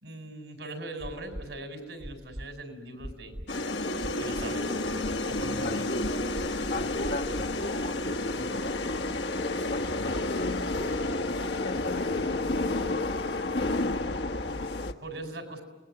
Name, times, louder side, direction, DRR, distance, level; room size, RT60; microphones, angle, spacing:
voice 1, 0.0-3.3 4.2-4.7 5.3-6.0 15.0-15.6, right 2 dB, 80° right, 4.7 m, -40 dB
sound 1, 1.0-1.5 2.0-2.5 3.0-3.5 4.0-4.5 5.0-5.5 6.0-6.5 7.0-7.5 8.0-8.1, equal, 35° right, 1.0 m, -39 dB
sound 2, 3.5-14.9, left 2 dB, 70° left, 1.3 m, -30 dB
voice 2, 5.6-6.1 6.7-9.2 9.7-11.0 11.6-12.9, left 2 dB, 55° left, 1.2 m, -37 dB
29.5 x 20.5 x 7.7 m
head